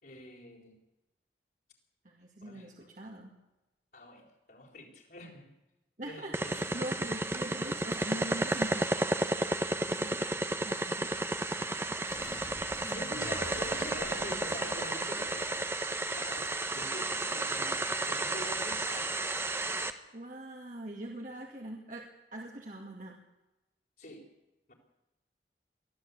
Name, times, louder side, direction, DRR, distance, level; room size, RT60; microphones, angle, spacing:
voice 1, 0.0-0.8 2.4-2.9 3.9-5.5 6.0-6.6 11.5-15.9 16.2-19.2 24.0-24.3 24.7-24.8, left 1 dB, 55° left, -3 dB, 4.0 m, -46 dB
voice 2, 2.0-3.3 6.0-9.0 9.9-10.3 10.6-11.2 20.1-23.2, right 1 dB, 45° right, 0 dB, 2.3 m, -43 dB
sound 1, 6.3-19.9, right 2 dB, 15° right, 1.2 m, -32 dB
sound 2, 12.1-15.8, left 1 dB, 30° left, 1.6 m, -48 dB
23.5 x 15.5 x 8.3 m, 0.99 s
head